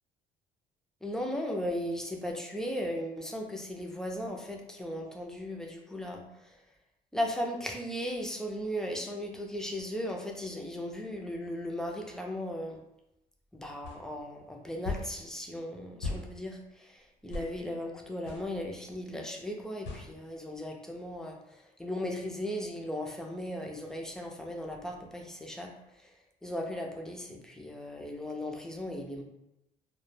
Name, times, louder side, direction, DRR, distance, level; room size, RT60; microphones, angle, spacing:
voice 1, 1.0-6.6 7.1-12.8 13.5-26.2 26.4-29.2, equal, 5° left, 1 dB, 0.4 m, -37 dB
sound 1, 13.8-14.0 14.8-15.1 16.0-16.3 17.3-17.5 18.3-18.5 19.8-20.1, left 3 dB, 80° left, 0.7 m, -36 dB
2.1 x 2.1 x 3.1 m, 0.87 s
cardioid pair, 110°, 17 cm